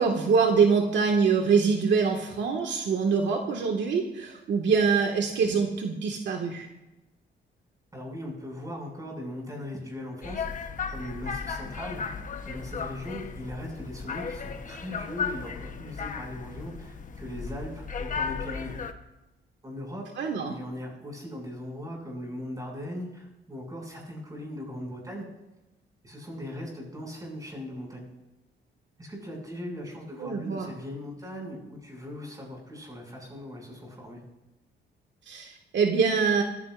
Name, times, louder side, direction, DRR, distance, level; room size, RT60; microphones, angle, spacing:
voice 1, 0.0-6.7 20.2-20.5 30.2-30.7 35.3-36.4, right 5 dB, 70° right, 2 dB, 1.9 m, -24 dB
voice 2, 7.9-12.0 12.5-18.7 19.6-20.0 20.4-25.2 26.0-28.1 29.0-34.2, left 1 dB, 20° right, -1 dB, 6.8 m, -39 dB
sound 1, 10.2-18.9, left 5 dB, 40° left, 1.1 m, -35 dB
24.0 x 15.5 x 2.6 m, 0.99 s
cardioid pair, 115°, 20 cm